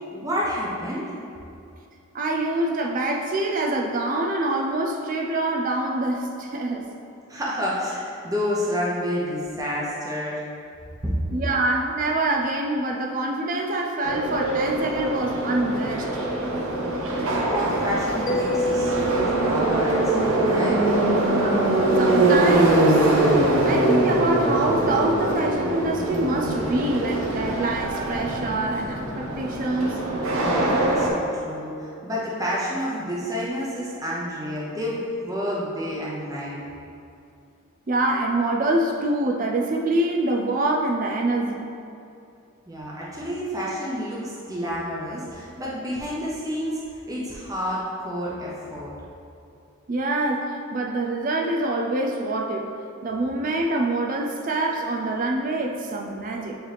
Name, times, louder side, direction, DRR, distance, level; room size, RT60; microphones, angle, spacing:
voice 1, 0.1-1.1 7.3-10.4 11.0-11.1 16.7-20.8 30.4-36.6 42.7-48.9, equal, 15° right, -6 dB, 0.8 m, -29 dB
voice 2, 2.1-6.9 11.3-16.1 21.3-21.7 22.0-23.0 23.6-30.0 37.9-41.8 49.9-52.7 53.0-56.6, right 2 dB, 40° right, 1 dB, 0.4 m, -25 dB
Subway metro underground, 14.0-31.1, right 1 dB, 80° right, 0.8 m, -23 dB
Mallet percussion, 18.3-21.7, right 1 dB, 40° left, 0.5 m, -30 dB
8.9 x 3.1 x 3.3 m, 2.6 s
head